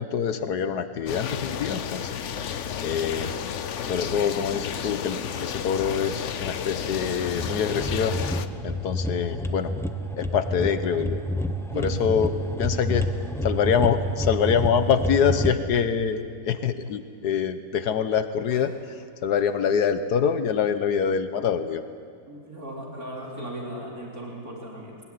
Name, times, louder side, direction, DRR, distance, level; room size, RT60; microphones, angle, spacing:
voice 1, 0.0-2.1 2.8-3.3 3.8-8.2 8.6-9.7 10.1-11.2 11.8-12.3 12.6-13.1 13.4-18.7 19.2-21.8, left 7 dB, 80° left, 10 dB, 1.5 m, -25 dB
sound 1, 1.1-8.5, left 8 dB, 55° left, 1.0 m, -32 dB
sound 2, 7.4-15.5, equal, ahead, 0.8 m, -29 dB
voice 2, 12.7-13.0 18.5-18.7 22.3-25.0, right 1 dB, 65° right, -3 dB, 4.4 m, -37 dB
21.5 x 20.0 x 9.7 m, 2.2 s
omnidirectional pair, 1.7 m